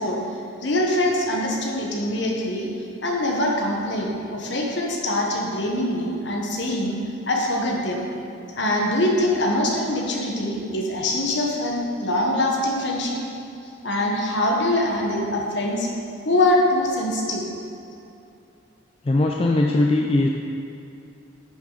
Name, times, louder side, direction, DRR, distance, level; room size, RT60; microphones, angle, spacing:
voice 1, 0.0-2.7 3.0-7.0 7.3-8.1 8.5-13.2 13.8-15.9 16.2-17.5, left 1 dB, 55° left, 0 dB, 1.2 m, -23 dB
voice 2, 19.1-20.3, left 2 dB, 25° left, 0 dB, 0.4 m, -19 dB
9.9 x 6.5 x 4.0 m, 2.6 s
head